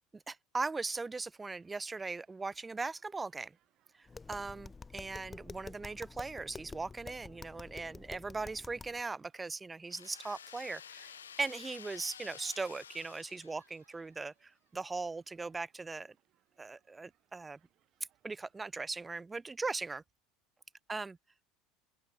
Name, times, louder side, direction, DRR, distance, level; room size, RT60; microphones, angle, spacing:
voice 1, 0.3-3.5 4.3-14.3 14.7-16.1 16.6-17.6 18.2-20.0 20.9-21.2, right 3 dB, 20° right, 0.6 m, -39 dB
Human group actions, 1.4-18.7, right 13 dB, 50° right, 6.2 m, -75 dB
Tap, 4.1-9.0, left 4 dB, 20° left, 1.1 m, -49 dB
sound 1, 9.9-14.0, left 8 dB, 85° left, 1.7 m, -51 dB
open air
hypercardioid pair, 75°, 0 cm